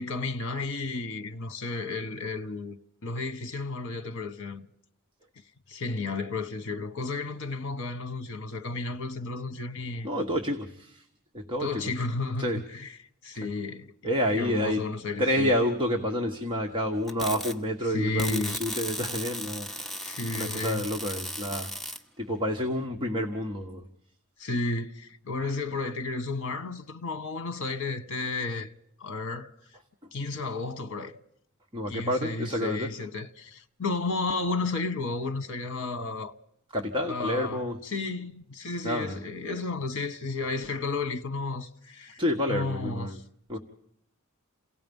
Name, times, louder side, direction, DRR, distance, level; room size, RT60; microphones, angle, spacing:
voice 1, 0.0-4.7 5.7-10.1 11.6-12.9 13.2-13.9 14.3-15.5 17.9-18.6 20.0-20.9 24.4-28.7 29.0-29.5 30.1-31.2 31.9-36.3 37.1-42.2 42.5-43.2, left 3 dB, 60° left, 1.2 m, -33 dB
voice 2, 10.0-11.0 11.3-11.9 12.4-12.6 14.0-14.8 15.2-20.0 20.4-21.7 22.2-23.8 31.7-32.9 36.7-37.8 38.8-39.2 42.2-43.2 43.5-43.6, equal, 25° right, 1.4 m, -29 dB
sound 1, 17.1-17.5 18.2-22.0, equal, ahead, 1.1 m, -36 dB
28.5 x 17.5 x 5.4 m
head